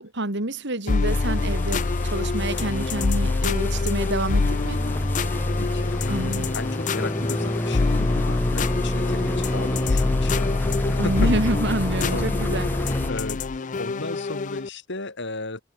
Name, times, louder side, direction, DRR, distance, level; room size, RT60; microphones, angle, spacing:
voice 1, 0.0-4.8 6.1-6.5 11.0-12.7, right 1 dB, 55° right, 3.2 m, -28 dB
sound 1, 0.9-14.7, left 4 dB, 35° left, 0.5 m, -26 dB
sound 2, 1.1-13.1, equal, 10° left, 3.5 m, -28 dB
voice 2, 5.4-11.3 12.1-12.3 13.1-15.6, left 2 dB, 55° left, 4.7 m, -35 dB
head